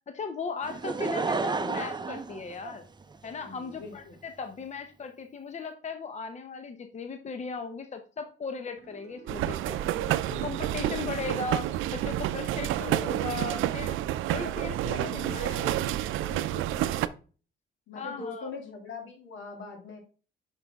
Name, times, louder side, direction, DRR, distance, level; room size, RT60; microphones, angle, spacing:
voice 1, 0.1-2.8 3.2-9.8 10.4-11.7 11.9-14.0 14.3-15.7 16.8-16.9 17.9-18.5, left 5 dB, 35° left, 7 dB, 0.8 m, -37 dB
Laughter / Crowd, 0.6-3.3 4.0-4.1, right 4 dB, 20° right, 0.7 m, -31 dB
voice 2, 3.4-4.2 9.9-10.5 10.8-11.1 12.5-13.2 14.3-16.0 16.3-17.0 17.9-20.0, left 4 dB, 75° left, 2 dB, 2.5 m, -42 dB
sound 1, 8.8-11.6 12.3-15.1, right 6 dB, 60° right, 1.0 m, -52 dB
sound 2, 9.3-17.1, right 13 dB, 90° right, 0.5 m, -29 dB
5.8 x 5.6 x 3.5 m, 0.37 s
cardioid pair, 90°, 20 cm